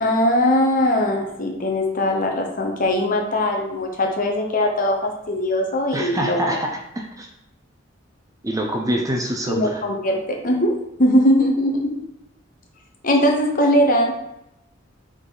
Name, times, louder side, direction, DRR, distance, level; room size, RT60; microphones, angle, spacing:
voice 1, 0.0-6.6 9.5-10.7 11.0-12.0 13.0-14.2, left 1 dB, 45° left, 2 dB, 1.0 m, -20 dB
voice 2, 5.9-7.3 8.4-9.8, equal, 15° right, 2 dB, 0.7 m, -25 dB
6.1 x 3.9 x 4.0 m, 0.86 s
head